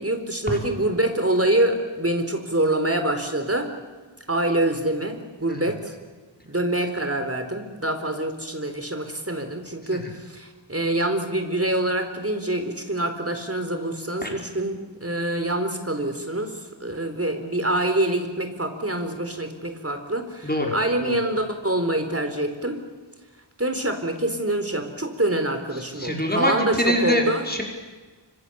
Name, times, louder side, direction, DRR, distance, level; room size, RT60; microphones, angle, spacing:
voice 1, 0.0-3.7 4.3-5.9 6.5-22.8 23.6-27.5, right 1 dB, 30° right, 7 dB, 4.3 m, -25 dB
voice 2, 20.4-20.7 21.0-21.1 25.9-27.6, equal, 20° left, 0 dB, 5.6 m, -24 dB
30.0 x 25.5 x 7.2 m, 1.4 s
wide cardioid pair, 55°, 45 cm